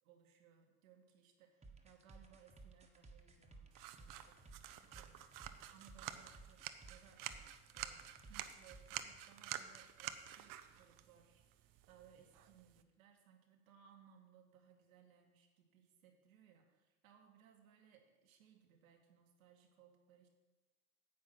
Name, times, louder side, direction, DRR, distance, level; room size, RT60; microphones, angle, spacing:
voice 1, 0.0-3.7 4.0-4.4 4.8-5.3 5.7-20.3, right 8 dB, 80° right, 3 dB, 2.0 m, -66 dB
sound 1, 1.6-9.2, right 3 dB, 15° right, 1.5 m, -59 dB
sound 2, 3.7-12.8, right 11 dB, 55° right, 0.9 m, -50 dB
9.7 x 7.9 x 5.8 m, 1.2 s
hypercardioid pair, 80°, 40 cm